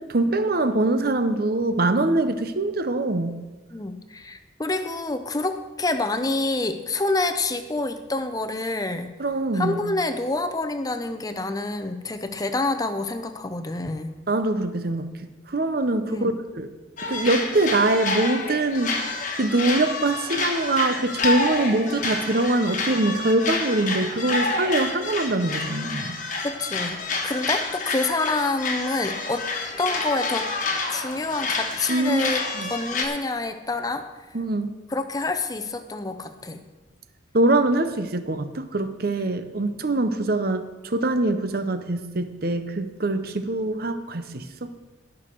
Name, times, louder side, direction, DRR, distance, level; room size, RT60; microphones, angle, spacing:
voice 1, 0.0-3.4 9.2-9.8 14.3-15.1 15.5-16.7 17.0-26.2 31.9-32.3 32.5-32.7 34.3-34.7 37.3-44.7, right 2 dB, 50° right, 10 dB, 0.8 m, -23 dB
voice 2, 3.7-9.2 9.5-14.1 16.1-16.4 26.4-29.4 29.8-30.5 30.9-32.4 32.7-34.1 34.9-36.6, left 2 dB, 20° left, 8 dB, 0.7 m, -27 dB
sound 1, 17.0-33.1, left 3 dB, 40° left, 1.3 m, -28 dB
17.5 x 6.2 x 4.6 m, 1.2 s
head